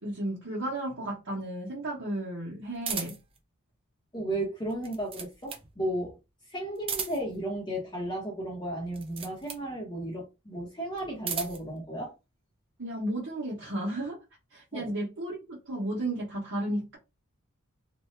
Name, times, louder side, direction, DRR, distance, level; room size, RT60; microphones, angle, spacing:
voice 1, 0.0-3.2 12.8-14.2 14.5-17.0, right 1 dB, 60° right, 1.0 m, -33 dB
sound 1, 2.8-3.4 4.7-5.7 6.8-7.4 8.9-9.7 10.9-11.7, right 6 dB, 25° right, 0.5 m, -36 dB
voice 2, 4.1-6.2 6.5-12.1 14.7-14.9, right 1 dB, 20° left, 0.9 m, -34 dB
2.7 x 2.3 x 3.1 m
head